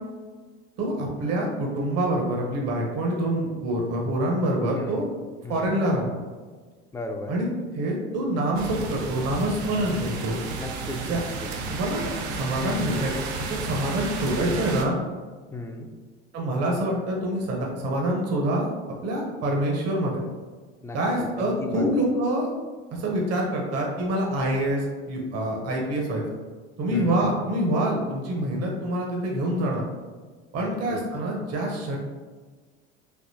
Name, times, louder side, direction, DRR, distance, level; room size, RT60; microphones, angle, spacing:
voice 1, 0.8-5.1 5.5-6.0 7.3-7.5 7.7-10.4 11.1-11.2 11.7-14.9 16.3-18.7 19.0-20.2 20.9-22.5 22.9-26.2 26.8-29.8 30.5-32.0, right 1 dB, 45° right, -1 dB, 0.9 m, -26 dB
voice 2, 4.7-5.1 5.4-5.8 6.9-7.3 10.6-11.5 15.5-15.9 20.8-21.0 21.3-21.9 26.9-27.6 30.6-31.0, left 2 dB, 10° left, 3 dB, 0.4 m, -36 dB
sound 1, 8.5-14.8, right 3 dB, 75° right, 0.6 m, -32 dB
3.6 x 2.7 x 2.7 m, 1.4 s
hypercardioid pair, 75°, 34 cm